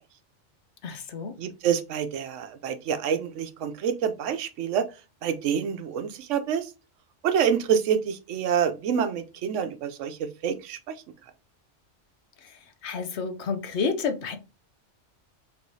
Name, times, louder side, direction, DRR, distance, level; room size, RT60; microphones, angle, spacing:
voice 1, 0.8-1.4 12.4-14.4, left 5 dB, 70° left, 1.0 m, -30 dB
voice 2, 1.4-4.9 5.2-6.7 7.2-10.9, right 8 dB, 85° right, 1.0 m, -27 dB
4.6 x 3.3 x 2.6 m
omnidirectional pair, 1.2 m